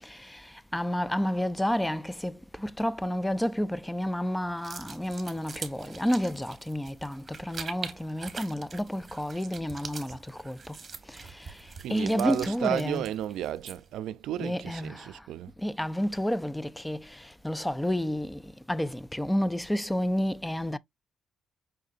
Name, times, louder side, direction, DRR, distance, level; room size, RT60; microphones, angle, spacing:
voice 1, 0.0-10.8 11.1-13.1 14.4-15.2 15.6-20.8, equal, 5° left, 0.4 m, -30 dB
sound 1, 4.6-14.0, right 5 dB, 40° right, 1.0 m, -44 dB
voice 2, 11.8-15.5, right 12 dB, 85° right, 0.4 m, -33 dB
5.7 x 3.7 x 2.4 m
cardioid pair, 90°, 0 cm